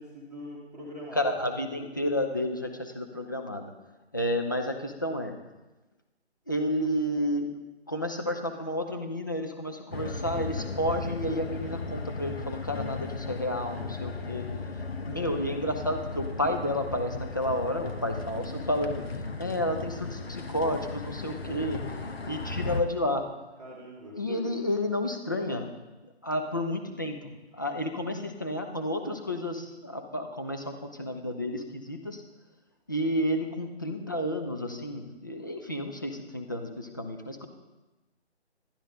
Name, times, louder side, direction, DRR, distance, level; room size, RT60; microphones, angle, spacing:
voice 1, 0.0-1.3 21.2-21.6 23.6-24.2, left 1 dB, ahead, -12 dB, 1.2 m, -42 dB
voice 2, 1.2-3.7 4.1-5.3 6.5-7.5 7.9-14.5 15.0-19.1 19.4-21.8 22.3-23.3 24.1-25.7 26.0-32.2 32.9-37.5, left 1 dB, 20° left, 4 dB, 0.5 m, -31 dB
sound 1, 9.9-22.8, left 3 dB, 65° left, 1.0 m, -36 dB
11.5 x 11.5 x 3.7 m, 1.1 s
figure-of-eight pair, 150°, 33 cm